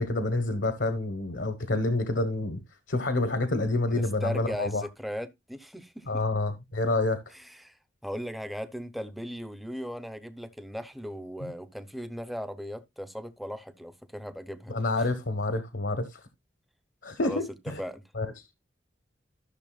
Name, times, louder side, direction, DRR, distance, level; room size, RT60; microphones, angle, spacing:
voice 1, 0.0-2.6 2.9-4.9 6.1-7.2 11.4-11.5 14.7-16.2 17.0-17.8 18.1-18.3, left 2 dB, 65° left, 1.1 m, -28 dB
voice 2, 3.9-6.2 7.3-14.8 17.2-17.4 17.8-18.0, equal, ahead, 0.7 m, -38 dB
13.5 x 6.5 x 2.3 m
head